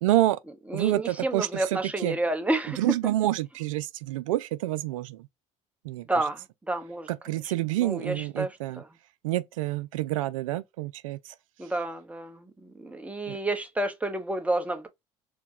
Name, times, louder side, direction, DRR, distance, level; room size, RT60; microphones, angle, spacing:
voice 1, 0.0-0.4 0.7-2.2 2.8-5.3 5.8-6.2 7.1-8.8 9.2-11.3 13.3-13.4, right 15 dB, 90° right, 0.4 m, -28 dB
voice 2, 0.7-2.8 6.1-7.1 7.8-8.8 11.6-14.9, right 2 dB, 10° right, 1.0 m, -30 dB
4.4 x 2.2 x 2.9 m
hypercardioid pair, 75°, 16 cm